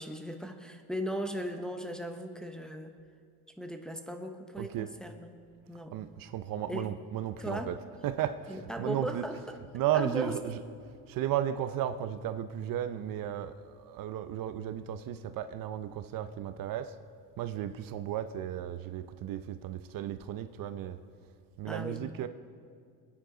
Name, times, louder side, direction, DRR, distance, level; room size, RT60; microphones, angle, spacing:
voice 1, 0.0-2.9 3.6-5.3 5.7-6.0 6.7-6.9 7.4-7.7 8.5-9.6 9.9-10.4 21.7-22.3, equal, ahead, 5 dB, 0.8 m, -37 dB
voice 2, 4.6-4.9 5.9-7.8 8.0-9.4 9.7-10.6 11.1-16.9 17.4-21.0 21.6-22.3, right 11 dB, 55° right, 11 dB, 0.6 m, -34 dB
22.0 x 9.6 x 3.8 m, 2.1 s
cardioid pair, 125°, 40 cm